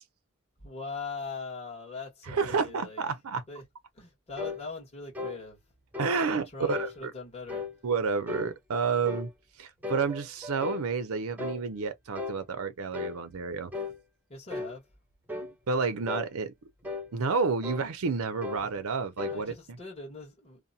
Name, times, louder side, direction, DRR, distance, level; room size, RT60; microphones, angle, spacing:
voice 1, 0.6-3.0 3.5-3.6 3.9-5.6 6.5-7.6 14.3-14.8 19.3-20.6, left 4 dB, 30° left, 1.4 m, -41 dB
voice 2, 2.2-3.4 6.0-7.1 7.8-9.3 9.6-13.7 15.7-16.5 17.1-19.5, right 5 dB, 70° right, 0.6 m, -30 dB
sound 1, 4.4-4.6 5.1-5.4 5.9-6.2 6.7-6.9 7.5-7.7 8.3-8.5 9.0-9.3 9.8-10.9 11.4-11.6 12.1-12.4 12.9-13.2 13.7-14.0 14.5-14.8 15.3-15.5 16.1-16.3 16.8-17.1 17.6-17.9 18.4-18.6 19.2-19.4, left 3 dB, 10° right, 0.6 m, -36 dB
2.7 x 2.1 x 2.7 m
head